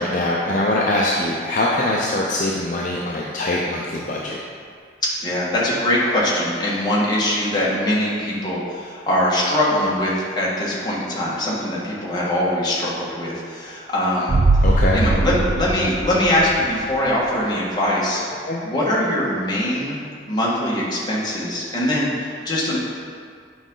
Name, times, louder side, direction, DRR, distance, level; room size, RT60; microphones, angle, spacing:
voice 1, 0.0-4.4 14.6-15.0 18.4-18.6, left 1 dB, 45° left, -3 dB, 0.6 m, -22 dB
voice 2, 5.0-14.4 14.9-18.2 18.6-22.8, left 1 dB, 25° left, -6 dB, 1.5 m, -22 dB
sound 1, 14.3-17.0 17.3-17.4, right 2 dB, 45° right, 0.4 m, -20 dB
8.7 x 5.1 x 3.8 m, 2.1 s
head